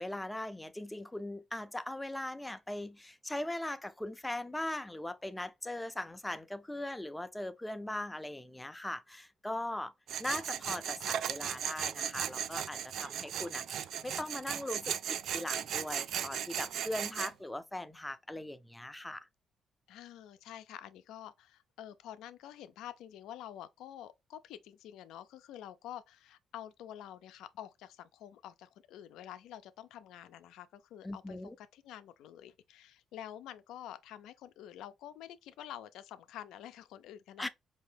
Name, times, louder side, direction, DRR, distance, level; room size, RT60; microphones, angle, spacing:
voice 1, 0.0-9.9 10.2-19.3 31.0-31.6 37.4-37.5, left 1 dB, 10° left, 0.5 m, -40 dB
Tools, 10.1-17.3, right 9 dB, 75° right, 0.3 m, -37 dB
voice 2, 19.9-37.5, left 11 dB, 90° left, 0.4 m, -48 dB
4.3 x 2.7 x 3.3 m
cardioid pair, 90°, 0 cm